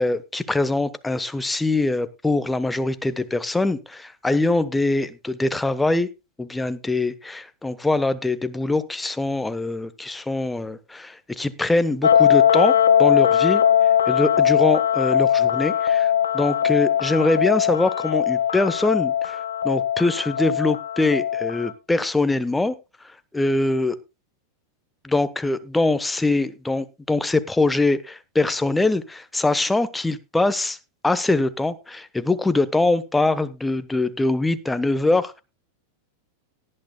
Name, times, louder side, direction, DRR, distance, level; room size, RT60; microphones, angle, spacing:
voice 1, 0.0-6.1 6.4-12.7 13.0-13.6 14.1-22.7 23.3-24.0 25.0-30.8 31.0-35.4, left 2 dB, 5° left, 13 dB, 1.0 m, -23 dB
sound 1, 12.0-21.7, left 9 dB, 70° left, 1.2 m, -20 dB
18.0 x 11.0 x 2.3 m, 0.27 s
figure-of-eight pair, 90°, 0 cm